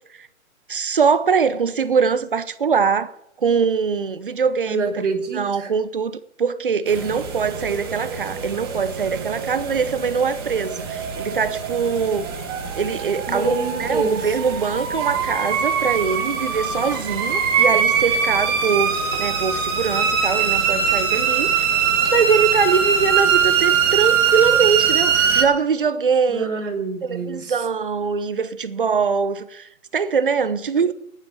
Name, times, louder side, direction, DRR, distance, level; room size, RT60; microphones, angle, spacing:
voice 1, 0.7-4.8 5.3-12.3 12.8-21.6 22.1-26.6 27.0-30.9, right 6 dB, 40° right, 0.7 m, -22 dB
voice 2, 4.7-5.7 13.3-14.4 25.3-25.4 26.3-27.6, right 3 dB, 60° right, 3.0 m, -26 dB
sound 1, 6.9-25.4, right 7 dB, 15° right, 1.3 m, -22 dB
11.0 x 8.9 x 8.6 m
hypercardioid pair, 170°, 42 cm